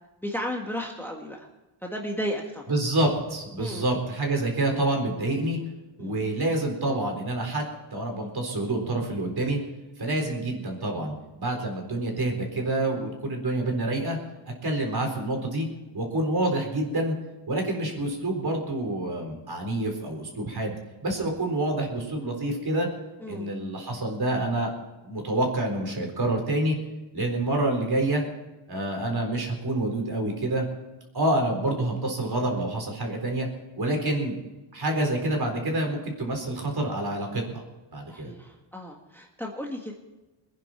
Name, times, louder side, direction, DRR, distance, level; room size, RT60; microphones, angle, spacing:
voice 1, 0.2-1.5 1.8-2.6 3.6-3.9 6.0-6.1 23.2-23.5 38.1-39.9, equal, 5° left, 0 dB, 1.6 m, -34 dB
voice 2, 2.7-5.6 6.0-7.7 7.9-9.6 10.0-14.2 14.6-15.7 15.9-17.1 17.5-20.7 21.0-22.9 23.3-24.7 25.0-26.8 27.1-28.2 28.7-30.6 31.1-33.5 33.8-34.4 34.7-37.6 37.9-38.3, right 1 dB, 50° right, 2 dB, 4.1 m, -27 dB
23.5 x 10.0 x 4.5 m, 1.1 s
wide cardioid pair, 130°, 50 cm